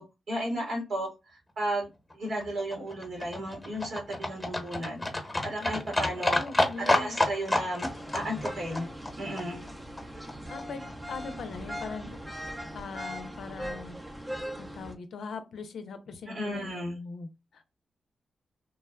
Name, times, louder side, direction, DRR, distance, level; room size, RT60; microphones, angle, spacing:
voice 1, 0.0-5.0 5.4-6.4 6.8-7.9 8.1-8.9 9.2-9.7 16.3-17.0, right 1 dB, 75° right, -1 dB, 1.7 m, -34 dB
Livestock farm animals working animals, 2.1-10.3 10.6-10.7 10.9-11.0 11.2-11.3 11.5-11.6 11.8-11.9 12.1-12.2 12.5-12.6 12.8-12.9, left 2 dB, 15° left, 1.0 m, -30 dB
voice 2, 6.3-7.2 10.5-12.2 12.7-14.0 14.6-17.6, left 4 dB, 75° left, 9 dB, 0.5 m, -40 dB
sound 1, 7.8-14.9, equal, 20° right, 0.6 m, -40 dB
3.3 x 2.1 x 2.3 m, 0.25 s
supercardioid pair, 50°, 0 cm